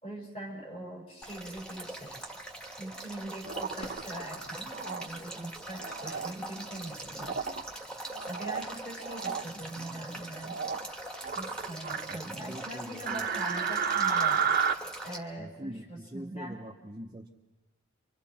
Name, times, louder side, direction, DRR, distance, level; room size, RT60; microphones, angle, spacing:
voice 1, 0.0-2.2 2.8-7.4 8.2-10.6 11.3-14.4 15.0-16.6, right 1 dB, 30° left, -1 dB, 4.8 m, -42 dB
Male speech man speaking / Stream / Trickle dribble, 1.2-15.2, right 1 dB, 5° left, 1.7 m, -42 dB
sound 1, 3.4-4.0 4.7-5.0 5.8-6.3 7.2-7.6 8.1-8.7 9.0-9.4 10.4-10.8 11.2-12.2 13.1-14.7, right 6 dB, 45° right, 0.8 m, -31 dB
sound 2, 3.8-5.8 6.1-6.2 6.9-7.8, left 1 dB, 80° left, 2.3 m, -52 dB
voice 2, 12.1-13.3 15.4-17.3, equal, 20° right, 0 dB, 0.8 m, -44 dB
29.5 x 25.5 x 4.3 m, 1.1 s
head